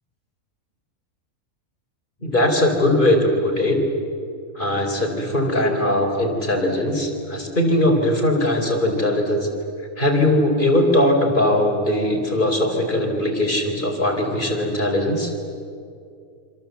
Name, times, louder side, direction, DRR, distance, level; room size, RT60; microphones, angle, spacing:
voice 1, 2.2-3.8 4.5-9.5 10.0-15.3, left 1 dB, 35° left, 2 dB, 4.4 m, -20 dB
27.0 x 27.0 x 8.2 m, 2.4 s
omnidirectional pair, 1.6 m